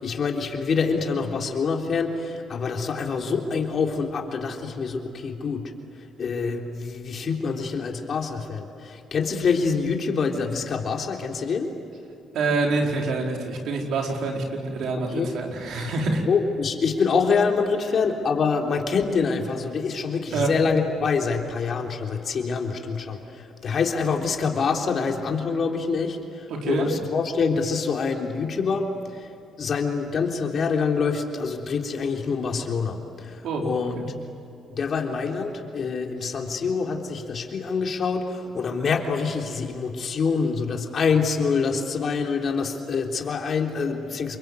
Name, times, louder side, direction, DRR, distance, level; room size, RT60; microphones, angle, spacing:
voice 1, 0.0-11.7 15.1-15.3 16.3-29.3 29.6-34.1 34.7-44.4, left 5 dB, 55° left, 2 dB, 3.6 m, -26 dB
voice 2, 12.3-16.2 20.3-20.5 26.5-26.9 33.4-34.1, right 3 dB, 75° right, 1 dB, 4.8 m, -26 dB
29.0 x 23.5 x 8.2 m, 2.7 s
cardioid pair, 90°, 0 cm